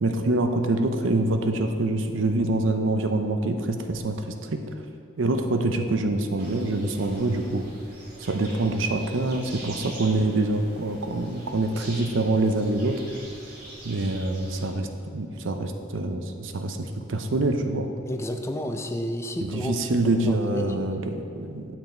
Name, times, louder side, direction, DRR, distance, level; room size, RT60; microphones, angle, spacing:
voice 1, 0.0-4.2 4.5-4.6 5.2-7.6 8.3-13.0 13.8-14.9 15.1-17.9 19.4-21.8, right 2 dB, 90° right, 5 dB, 0.6 m, -25 dB
sound 1, 6.4-14.7, right 1 dB, 55° right, 1.9 m, -44 dB
voice 2, 18.1-19.8 20.2-20.9, left 1 dB, 15° left, 5 dB, 0.4 m, -31 dB
9.2 x 5.9 x 4.3 m, 2.6 s
head